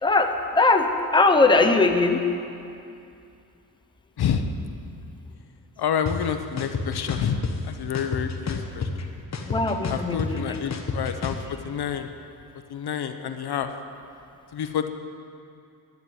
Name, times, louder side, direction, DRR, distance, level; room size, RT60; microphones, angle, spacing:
voice 1, 0.0-2.2 9.5-10.6, left 3 dB, 10° left, 5 dB, 0.9 m, -20 dB
voice 2, 4.2-4.5 5.8-8.8 9.9-11.4 11.6-12.1 12.7-13.7 14.5-14.9, left 8 dB, 70° left, 8 dB, 0.9 m, -28 dB
sound 1, 6.1-6.2 6.6-7.5 7.9-9.0 9.3-11.4, left 5 dB, 40° left, 1.2 m, -29 dB
12.0 x 9.7 x 9.4 m, 2.5 s
wide cardioid pair, 140°, 39 cm